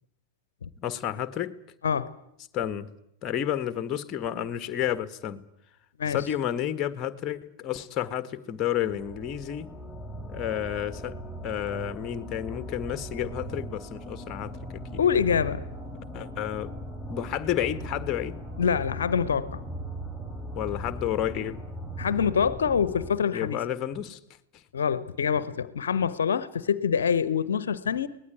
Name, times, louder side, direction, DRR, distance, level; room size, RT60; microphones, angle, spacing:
voice 1, 0.8-1.5 2.5-2.9 3.2-5.4 6.1-9.7 10.3-11.1 11.4-15.0 16.1-16.7 17.1-18.4 20.5-21.6 23.3-24.2, left 10 dB, 30° left, 13 dB, 1.5 m, -31 dB
sound 1, 8.8-23.1, equal, 5° right, 3.5 m, -39 dB
voice 2, 15.0-15.6 18.6-19.6 22.0-23.6 24.7-28.1, left 7 dB, 65° left, 17 dB, 1.0 m, -25 dB
23.5 x 19.0 x 9.2 m, 0.80 s
figure-of-eight pair, 90°, 0 cm